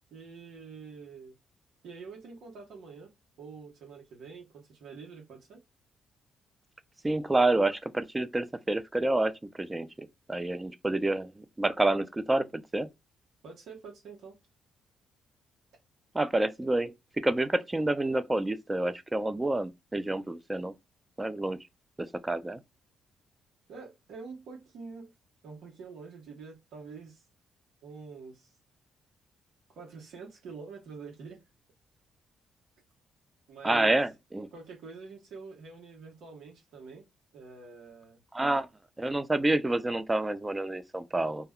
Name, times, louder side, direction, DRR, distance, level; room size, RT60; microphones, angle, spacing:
voice 1, 0.1-1.3 1.8-3.1 3.4-5.6 13.4-14.4 23.7-25.1 25.4-27.2 27.8-28.5 29.7-31.4 33.5-34.0 34.5-37.0 37.3-38.2, right 4 dB, 75° right, 0.9 m, -46 dB
voice 2, 7.0-12.9 16.1-20.7 21.2-21.6 22.0-22.6 33.6-34.5 38.3-38.7 39.0-41.5, right 2 dB, 15° right, 0.4 m, -28 dB
2.2 x 2.1 x 3.5 m
cardioid pair, 90°, 0 cm